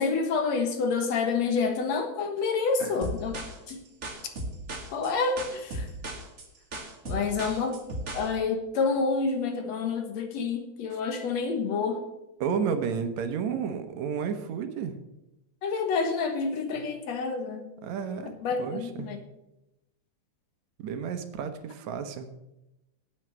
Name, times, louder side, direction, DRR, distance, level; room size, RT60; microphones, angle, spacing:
voice 1, 0.0-3.4 3.7-3.8 4.9-5.9 7.1-7.8 8.1-12.0 15.6-17.7 18.4-19.2, left 4 dB, 65° left, 6 dB, 2.5 m, -28 dB
sound 1, 3.0-8.3, right 1 dB, 30° right, 1.4 m, -36 dB
voice 2, 12.4-15.0 17.8-18.3 18.6-19.1 20.8-22.3, right 6 dB, 75° right, 8 dB, 2.3 m, -31 dB
9.3 x 8.0 x 7.8 m, 0.92 s
omnidirectional pair, 3.4 m